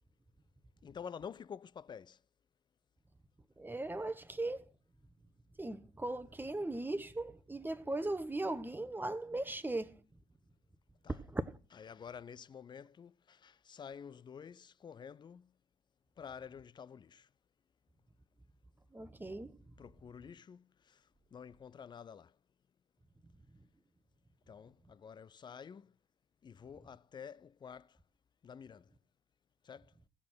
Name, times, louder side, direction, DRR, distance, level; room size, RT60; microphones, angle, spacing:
voice 1, 0.8-2.2 11.0-11.1 11.8-15.5 16.2-17.3 19.8-21.0 21.3-22.3 24.5-25.9 26.4-28.0 28.4-28.9 29.6-29.9, left 7 dB, 35° left, 0.6 m, -49 dB
voice 2, 3.6-4.7 5.6-10.0 11.1-11.5 18.9-19.6, right 2 dB, 15° right, 1.2 m, -38 dB
16.5 x 7.2 x 6.2 m
figure-of-eight pair, 45°, 13 cm